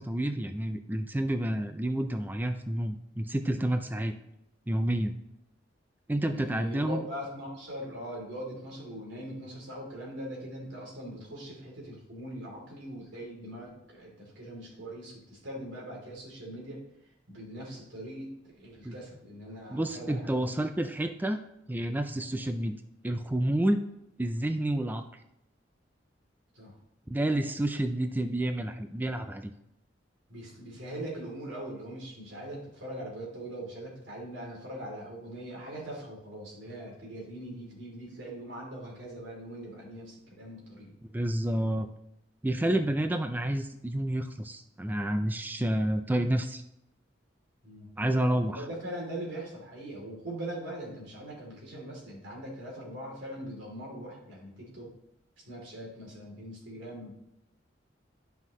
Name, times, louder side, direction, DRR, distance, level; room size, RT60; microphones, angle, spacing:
voice 1, 0.0-4.2 4.7-5.1 6.1-7.0 18.8-18.9 19.7-21.4 21.7-22.8 23.0-23.8 24.2-25.0 27.1-29.5 41.1-41.9 42.4-46.6 48.0-48.6, right 1 dB, 10° right, 7 dB, 0.4 m, -29 dB
voice 2, 6.3-16.8 17.3-20.6 26.5-26.8 30.3-40.9 47.6-47.9 48.4-54.9 55.4-57.1, right 1 dB, 90° right, -3 dB, 3.2 m, -41 dB
11.0 x 5.7 x 3.1 m, 0.83 s
head